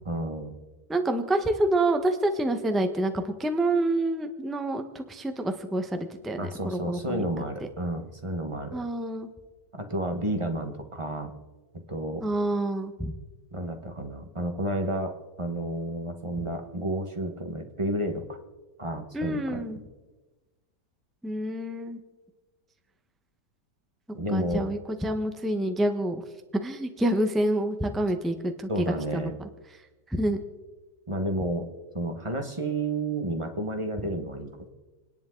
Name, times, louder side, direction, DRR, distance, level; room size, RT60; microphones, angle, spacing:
voice 1, 0.0-0.5 6.4-8.8 9.7-11.3 11.9-12.2 13.5-18.4 18.8-19.6 24.1-24.7 28.7-29.3 31.1-31.7 31.9-34.7, right 1 dB, 20° right, 5 dB, 1.3 m, -31 dB
voice 2, 0.9-7.2 8.7-9.3 12.2-13.1 19.1-19.8 21.2-22.0 24.3-26.2 26.6-28.7 29.1-29.3 30.2-30.4, right 1 dB, ahead, 7 dB, 0.9 m, -27 dB
30.0 x 10.5 x 3.9 m, 1.2 s
omnidirectional pair, 1.8 m